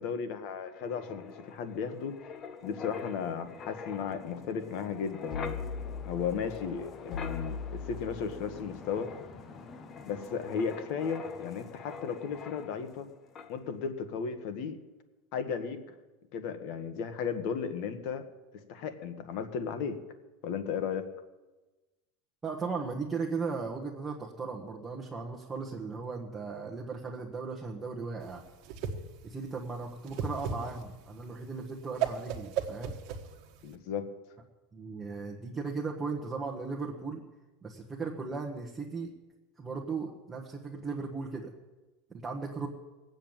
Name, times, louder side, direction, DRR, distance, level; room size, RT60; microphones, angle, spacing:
voice 1, 0.0-2.1 2.6-5.5 6.0-9.1 10.0-13.1 13.5-14.8 15.3-15.9 16.3-18.2 18.7-20.0 20.4-21.1 33.6-34.1, left 6 dB, 50° left, 9 dB, 1.5 m, -35 dB
Wind, 0.7-13.1 13.4-13.6, left 5 dB, 25° left, 0.8 m, -42 dB
voice 2, 22.4-28.4 29.2-32.9 34.7-37.2 37.6-39.1 39.6-41.5 42.1-42.7, right 4 dB, 10° right, -1 dB, 1.3 m, -37 dB
Whoosh swoosh swish, 28.2-33.7, right 7 dB, 45° right, 1.5 m, -36 dB
19.5 x 8.0 x 8.9 m, 1.1 s
supercardioid pair, 170°, 0 cm